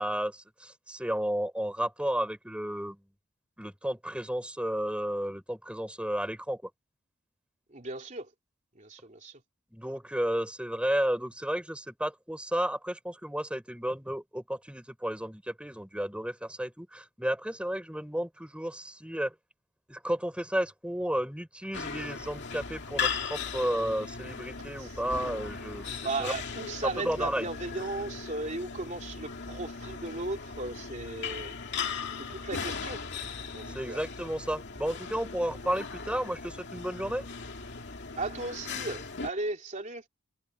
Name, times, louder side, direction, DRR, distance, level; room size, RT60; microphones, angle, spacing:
voice 1, 0.0-3.0 3.6-6.6 9.7-19.3 19.9-26.3 26.8-27.5 33.7-37.3, equal, 5° right, 5.2 m, -32 dB
voice 2, 7.7-8.3 8.7-9.4 24.8-24.9 25.2-25.4 26.0-31.5 32.2-33.0 33.5-34.0 38.2-40.0, right 2 dB, 35° right, 3.1 m, -36 dB
sound 1, 21.7-39.3, left 5 dB, 55° left, 2.5 m, -38 dB
head